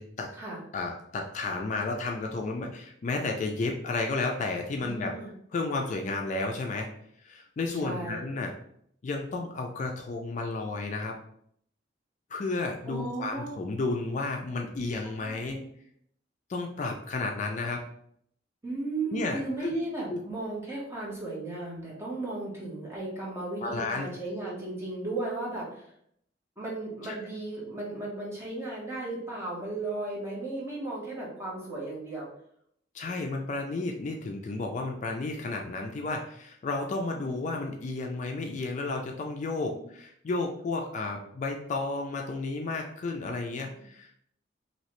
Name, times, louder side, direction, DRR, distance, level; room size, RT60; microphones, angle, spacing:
voice 1, 0.7-5.1 5.5-6.9 7.2-8.5 9.0-11.2 12.3-15.6 16.5-17.8 19.1-19.7 20.1-20.2 23.6-24.1 27.0-27.2 32.9-44.2, left 3 dB, 40° left, 2 dB, 0.3 m, -32 dB
voice 2, 4.8-5.3 7.8-8.2 12.9-13.5 15.2-15.6 18.6-25.9 26.6-32.3 33.0-33.2 37.1-37.2 39.7-39.9, right 2 dB, 15° right, -5 dB, 0.9 m, -35 dB
3.0 x 2.7 x 3.0 m, 0.69 s
head